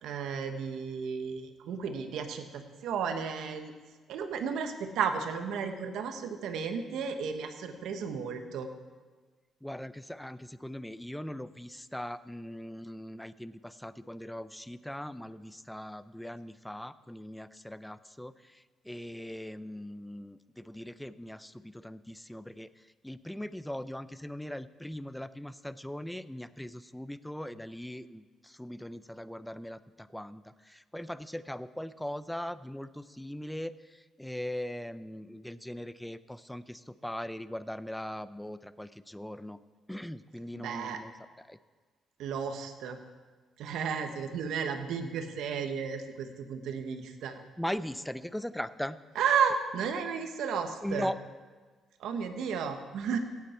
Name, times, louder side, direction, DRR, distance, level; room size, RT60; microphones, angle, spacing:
voice 1, 0.0-3.7 4.1-8.7 40.5-41.0 42.2-43.0 43.6-47.4 49.1-51.1 52.0-53.2, right 6 dB, 80° right, 7 dB, 1.2 m, -33 dB
voice 2, 9.6-39.6 39.9-41.1 41.5-41.6 47.6-49.0 50.8-51.2, left 1 dB, 5° left, 15 dB, 0.5 m, -40 dB
17.0 x 8.4 x 4.4 m, 1.4 s
cardioid pair, 90°, 0 cm